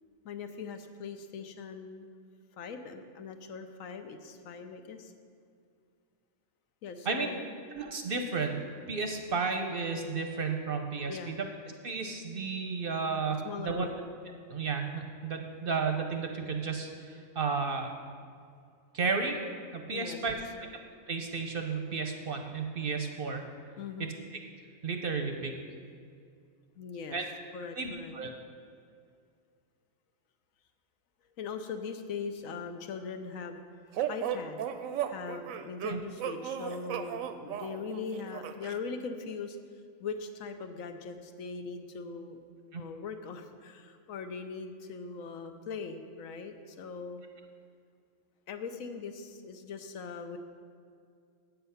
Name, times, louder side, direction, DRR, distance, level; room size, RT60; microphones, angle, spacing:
voice 1, 0.2-2.1 2.6-5.1 6.8-7.4 11.1-11.4 13.4-14.1 19.9-20.2 23.8-24.2 26.8-27.2 27.5-28.1 31.4-33.6 34.1-34.6 35.1-39.6 40.0-42.4 42.7-47.2 48.5-50.4, left 5 dB, 80° left, 7 dB, 1.1 m, -40 dB
voice 2, 7.7-8.6 8.9-11.5 11.8-13.9 14.5-17.9 18.9-19.4 19.7-20.7 21.1-23.4 24.8-25.5 27.1-27.3 27.8-28.3 35.9-36.0 42.7-42.8, right 4 dB, 50° right, 4 dB, 0.7 m, -33 dB
sound 1, 34.0-38.8, right 9 dB, 80° right, 1.0 m, -35 dB
8.1 x 7.9 x 5.6 m, 2.3 s
omnidirectional pair, 1.4 m